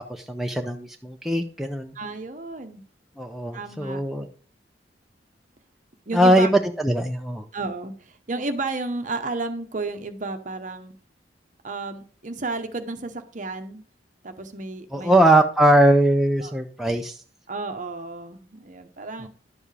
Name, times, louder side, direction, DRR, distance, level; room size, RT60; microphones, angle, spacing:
voice 1, 0.0-1.9 3.2-4.3 6.1-7.4 14.9-17.1 19.2-19.3, right 1 dB, ahead, 3 dB, 0.5 m, -20 dB
voice 2, 1.9-2.8 3.5-4.0 6.1-6.5 7.5-10.9 11.6-13.8 14.2-15.2 16.4-16.6 17.5-19.3, right 3 dB, 45° right, 7 dB, 0.9 m, -32 dB
11.0 x 7.1 x 3.4 m, 0.42 s
head